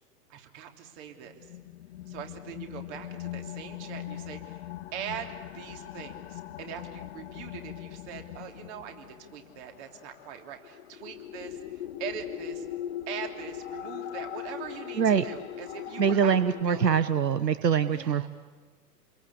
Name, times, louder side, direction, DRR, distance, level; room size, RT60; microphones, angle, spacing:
voice 1, 0.3-1.5 2.1-4.6 4.9-12.7 13.1-17.1 17.9-18.3, right 9 dB, 45° right, 4 dB, 3.3 m, -42 dB
sound 1, 1.3-17.0, left 11 dB, 45° left, 0.7 m, -40 dB
voice 2, 16.0-18.3, right 7 dB, 85° right, 14 dB, 1.0 m, -24 dB
28.0 x 22.5 x 8.5 m, 1.4 s
figure-of-eight pair, 115°, 48 cm